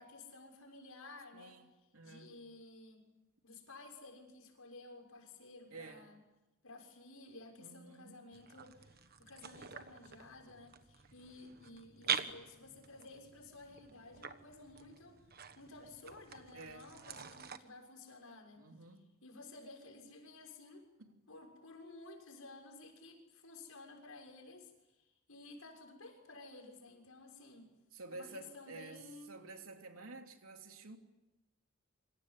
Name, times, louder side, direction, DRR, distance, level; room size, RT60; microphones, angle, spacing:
voice 1, 0.0-3.0 3.4-6.2 6.6-15.3 15.6-18.6 19.2-20.9 21.3-27.7 28.1-29.4, left 2 dB, 80° left, 6.6 m, -54 dB
voice 2, 1.3-2.4 5.7-6.1 7.6-8.3 16.5-16.9 18.6-19.0 21.0-21.2 27.9-31.0, right 3 dB, 80° right, 3.1 m, -51 dB
sound 1, 8.3-17.6, right 7 dB, 45° right, 1.4 m, -45 dB
27.0 x 26.0 x 8.4 m
head